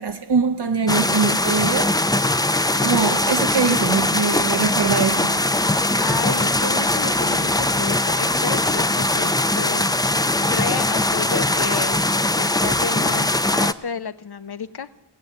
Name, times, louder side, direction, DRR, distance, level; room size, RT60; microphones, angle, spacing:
voice 1, 0.0-2.0 2.8-5.8, right 5 dB, 65° right, 0.9 m, -23 dB
sound 1, 0.9-13.7, left 1 dB, 10° left, 0.5 m, -21 dB
voice 2, 5.7-12.1 12.3-14.9, left 6 dB, 60° left, 0.8 m, -31 dB
17.5 x 8.8 x 8.1 m
wide cardioid pair, 65°, 44 cm